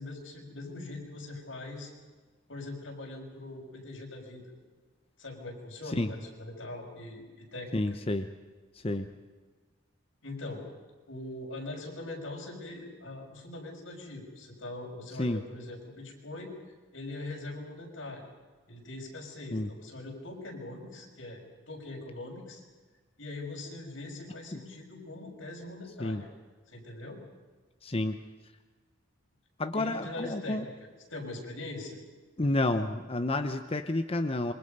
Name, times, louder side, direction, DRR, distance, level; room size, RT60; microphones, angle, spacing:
voice 1, 0.0-1.9 2.5-4.4 5.2-8.0 10.2-10.6 11.1-16.5 16.9-18.3 18.7-22.6 23.2-26.3 26.7-27.2 29.7-32.0, left 2 dB, 90° left, 0 dB, 6.4 m, -42 dB
voice 2, 7.7-8.3 8.8-9.1 15.2-15.4 19.5-19.7 26.0-26.2 27.8-28.2 29.6-30.6 32.4-34.5, left 2 dB, 30° left, 8 dB, 0.8 m, -30 dB
27.0 x 24.5 x 5.5 m, 1.4 s
head